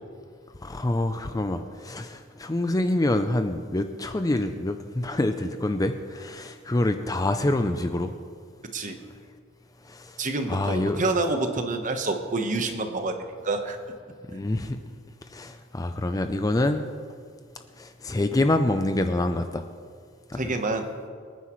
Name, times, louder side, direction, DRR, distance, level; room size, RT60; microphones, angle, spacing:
voice 1, 0.6-8.1 9.8-10.2 10.5-11.0 14.3-14.8 15.3-16.8 17.8-19.6 20.3-20.5, left 1 dB, 15° left, 7 dB, 0.4 m, -26 dB
voice 2, 10.2-13.2 13.4-13.8 20.3-20.9, right 3 dB, 35° right, 6 dB, 1.1 m, -27 dB
25.0 x 9.7 x 3.1 m, 2.1 s
head